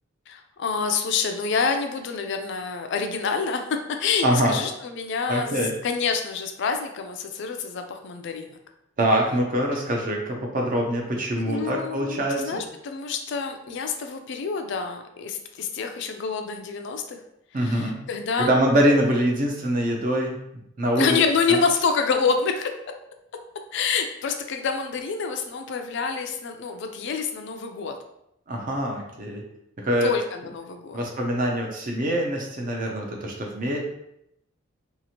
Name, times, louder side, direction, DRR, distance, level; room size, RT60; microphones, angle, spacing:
voice 1, 0.3-8.6 11.4-17.2 17.5-18.5 21.0-22.7 23.7-27.9 30.0-31.0, left 5 dB, 55° left, 5 dB, 0.3 m, -27 dB
voice 2, 4.2-4.6 5.3-5.7 9.0-12.6 17.5-18.1 18.4-20.4 20.8-21.2 21.5-21.6 28.5-29.4 29.8-30.1 30.9-33.8, right 1 dB, 40° right, 0 dB, 0.4 m, -24 dB
2.8 x 2.4 x 2.8 m, 0.79 s
head